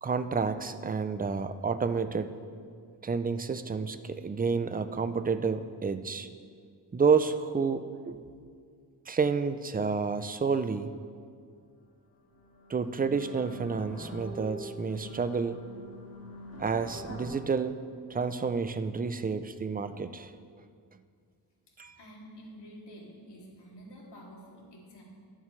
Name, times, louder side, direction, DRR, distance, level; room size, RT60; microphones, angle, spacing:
voice 1, 0.0-2.4 3.0-6.3 6.9-8.3 9.1-10.9 12.7-15.6 16.6-17.8 18.1-20.3 21.8-22.0, right 5 dB, 25° right, 11 dB, 0.4 m, -30 dB
sound 1, 11.9-12.0 12.3-17.3, left 1 dB, 55° left, 2.4 m, -45 dB
voice 2, 22.0-25.0, equal, 80° left, -3 dB, 2.5 m, -49 dB
20.0 x 7.4 x 3.2 m, 2.1 s
wide cardioid pair, 135°, 40 cm